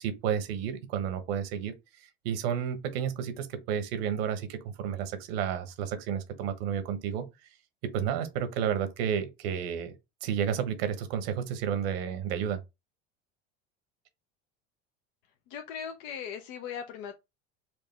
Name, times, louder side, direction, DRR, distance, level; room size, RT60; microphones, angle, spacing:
voice 1, 0.0-1.7 2.2-7.3 7.8-9.9 10.2-12.6, right 8 dB, 75° right, 1.1 m, -31 dB
voice 2, 15.5-17.1, left 7 dB, 70° left, 0.8 m, -38 dB
4.6 x 2.5 x 3.3 m
supercardioid pair, 105°, 31 cm